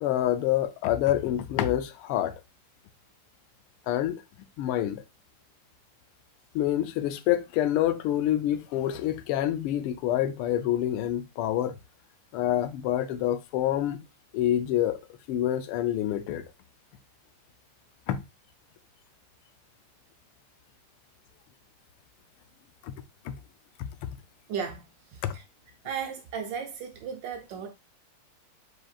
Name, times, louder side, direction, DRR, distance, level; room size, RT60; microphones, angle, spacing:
voice 1, 0.0-2.3 3.9-4.2 4.6-5.0 6.5-11.7 12.3-14.0 14.3-15.0 15.3-16.4 18.1-18.2 22.8-22.9 23.2-23.3 23.8-23.9 25.2-25.3, left 12 dB, 85° left, 1.5 m, -27 dB
voice 2, 24.5-24.8 25.1-25.4 25.8-27.7, right 7 dB, 70° right, 1.1 m, -35 dB
4.8 x 4.3 x 2.4 m
omnidirectional pair, 2.4 m